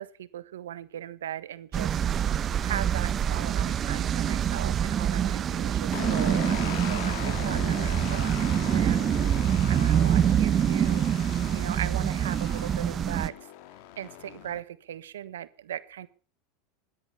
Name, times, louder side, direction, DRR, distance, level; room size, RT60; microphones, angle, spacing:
voice 1, 0.0-2.0 2.6-9.1 9.5-13.3 14.0-16.1, right 11 dB, 90° right, 16 dB, 1.2 m, -38 dB
sound 1, 1.7-13.3, right 9 dB, 35° right, 1.1 m, -25 dB
sound 2, 5.9-14.6, left 12 dB, 65° left, 2.1 m, -39 dB
17.0 x 10.5 x 7.0 m, 0.39 s
hypercardioid pair, 110°, 0 cm